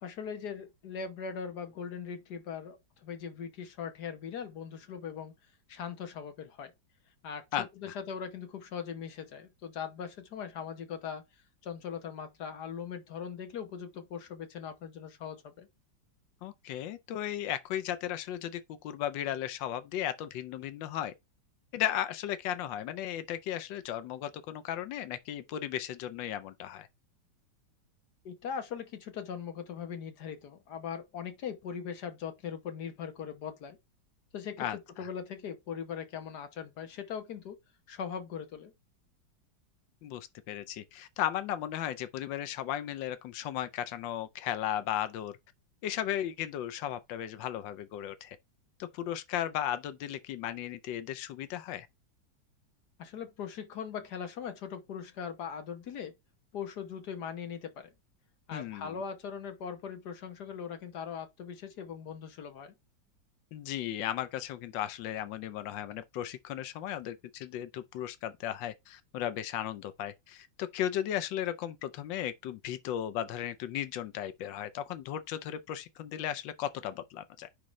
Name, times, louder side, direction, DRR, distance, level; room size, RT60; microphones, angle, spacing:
voice 1, 0.0-5.3 5.7-6.7 7.2-11.2 11.6-15.7 28.2-33.8 34.3-37.6 37.9-38.7 53.0-56.1 56.5-57.9 58.5-62.7, left 7 dB, 65° left, 1.6 m, -40 dB
voice 2, 7.5-8.0 16.4-21.1 21.7-26.9 34.6-35.1 40.0-45.4 45.8-48.4 48.8-51.9 58.5-59.0 63.5-77.5, left 11 dB, 85° left, 1.4 m, -35 dB
9.7 x 3.7 x 3.1 m
omnidirectional pair, 1.9 m